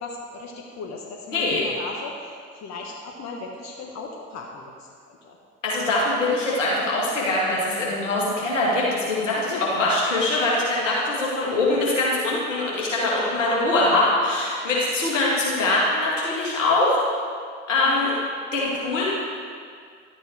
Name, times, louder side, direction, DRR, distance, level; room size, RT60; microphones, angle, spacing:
voice 1, 0.0-5.4 9.3-9.8 13.3-13.6 17.8-18.1, left 3 dB, 45° left, 0 dB, 1.4 m, -37 dB
voice 2, 1.3-1.6 5.6-17.0 17.7-18.2 18.5-19.0, left 2 dB, 85° left, -5 dB, 2.4 m, -23 dB
12.0 x 8.6 x 4.7 m, 2.2 s
figure-of-eight pair, 60°, 37 cm